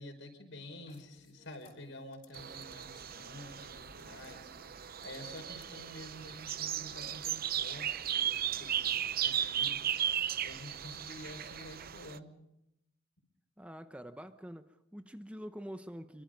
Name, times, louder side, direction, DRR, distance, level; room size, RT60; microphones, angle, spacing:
voice 1, 0.0-12.4, left 1 dB, 70° left, 5.4 m, -49 dB
sound 1, 0.9-8.8 9.5-9.6 9.8-10.1 10.8-10.9, left 3 dB, 45° left, 4.7 m, -65 dB
sound 2, 2.3-12.2, right 9 dB, 50° right, 0.7 m, -36 dB
voice 2, 13.6-16.2, equal, 5° right, 0.9 m, -46 dB
26.5 x 23.5 x 5.3 m
head